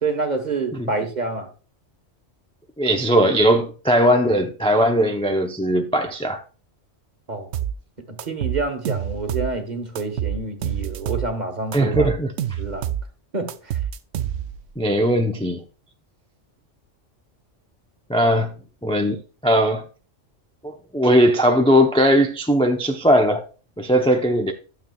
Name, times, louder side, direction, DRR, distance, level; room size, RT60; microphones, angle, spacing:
voice 1, 0.0-1.5 7.3-7.5 8.1-12.1 12.6-12.9 13.3-13.8, right 3 dB, 35° right, 1.3 m, -27 dB
voice 2, 2.8-6.4 11.7-12.6 14.8-15.6 18.1-18.5 18.8-19.9 20.6-23.5 23.8-24.5, equal, 5° left, 0.4 m, -19 dB
sound 1, 7.5-7.8 8.2-9.6 10.0-11.3 11.7-13.1 13.5-14.7, right 10 dB, 65° right, 0.8 m, -27 dB
12.5 x 7.3 x 2.3 m
omnidirectional pair, 1.3 m